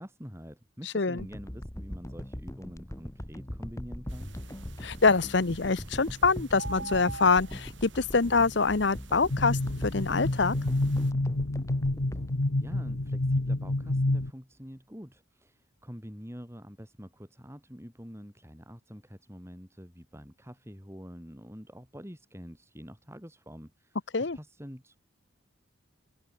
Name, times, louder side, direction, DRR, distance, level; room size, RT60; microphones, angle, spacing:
voice 1, 0.0-4.3 12.6-24.0 24.3-25.0, equal, 15° right, 6.7 m, -46 dB
voice 2, 0.9-1.3 4.8-10.5 24.1-24.4, left 4 dB, 55° left, 0.8 m, -25 dB
sound 1, 1.2-13.4 13.9-14.0, equal, 15° left, 1.5 m, -41 dB
sound 2, 4.1-11.1, right 3 dB, 60° right, 2.9 m, -46 dB
sound 3, 9.3-14.3, left 2 dB, 75° left, 1.4 m, -28 dB
open air
head